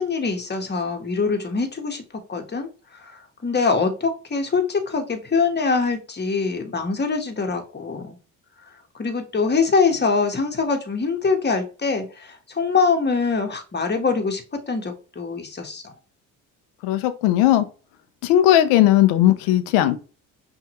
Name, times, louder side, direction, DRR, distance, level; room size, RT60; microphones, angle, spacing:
voice 1, 0.0-2.0 2.3-8.2 9.0-15.9, left 4 dB, 25° left, 1.3 m, -24 dB
voice 2, 16.8-17.6 18.2-20.0, left 13 dB, 75° left, 0.7 m, -17 dB
5.7 x 2.7 x 3.0 m
hypercardioid pair, 60°, 41 cm